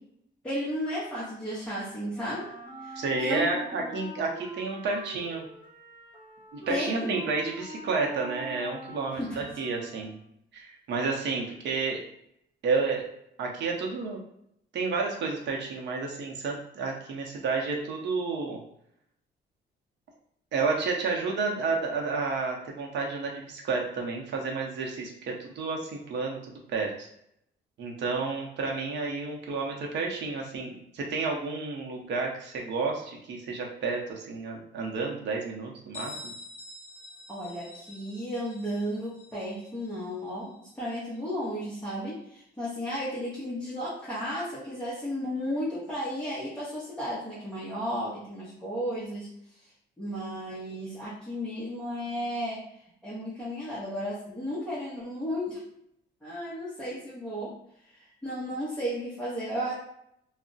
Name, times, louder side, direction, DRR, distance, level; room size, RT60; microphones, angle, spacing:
voice 1, 0.4-2.4 2.8-3.9 6.7-7.1 9.1-9.3 37.3-49.3 50.0-52.6 53.0-55.6 56.2-57.5 58.2-59.7, equal, 5° left, -10 dB, 0.7 m, -34 dB
Wind instrument woodwind instrument, 2.1-10.3, right 1 dB, 25° right, 0.8 m, -44 dB
voice 2, 3.0-5.4 6.5-10.2 10.5-12.0 12.6-13.0 13.4-14.2 14.7-18.6 20.5-27.1 27.8-36.3, right 4 dB, 70° right, 0 dB, 0.7 m, -31 dB
Bell, 35.9-41.4, left 2 dB, 35° left, 0.8 m, -47 dB
2.3 x 2.0 x 3.8 m, 0.73 s
cardioid pair, 170°, 19 cm